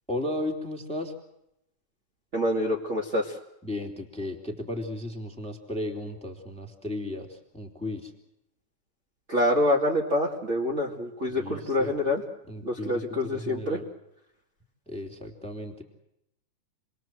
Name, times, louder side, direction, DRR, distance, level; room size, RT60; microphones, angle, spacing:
voice 1, 0.1-1.1 3.6-8.1 11.2-12.0 12.5-13.8 14.9-15.8, left 1 dB, ahead, 3 dB, 2.8 m, -35 dB
voice 2, 2.3-3.4 9.3-12.2 12.6-13.8, left 1 dB, 25° right, -3 dB, 2.3 m, -26 dB
29.0 x 21.5 x 7.8 m, 0.82 s
omnidirectional pair, 3.5 m